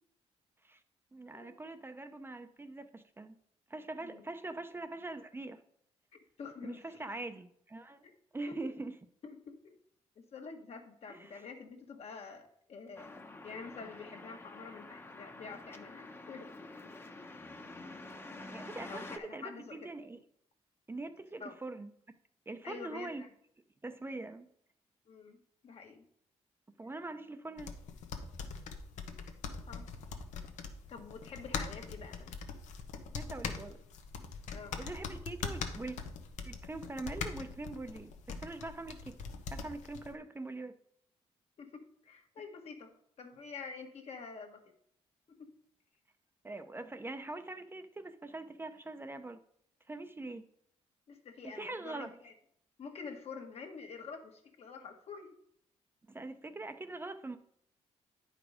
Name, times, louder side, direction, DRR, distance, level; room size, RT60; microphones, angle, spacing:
voice 1, 1.1-3.4 3.7-5.6 6.6-8.0 8.3-8.9 11.1-11.4 18.4-20.2 20.9-21.9 22.5-23.2 23.8-24.5 26.8-27.7 33.1-33.8 34.8-36.0 36.4-38.1 38.4-39.2 39.5-40.7 46.4-49.4 49.9-50.4 51.5-52.1 56.1-57.4, right 2 dB, 20° right, 8 dB, 0.6 m, -43 dB
voice 2, 6.4-7.1 8.0-8.1 8.5-8.6 9.2-9.7 10.2-16.5 18.8-19.9 21.4-21.6 22.6-23.3 25.1-26.1 29.7-29.9 30.9-32.3 34.5-34.8 41.6-44.6 51.1-52.3 52.8-55.3, left 5 dB, 60° left, 4 dB, 1.5 m, -47 dB
sound 1, 13.0-19.2, left 2 dB, 20° left, 0.9 m, -48 dB
sound 2, 27.6-40.1, left 5 dB, 85° left, 1.0 m, -42 dB
9.6 x 4.9 x 5.0 m, 0.67 s
cardioid pair, 95°, 12 cm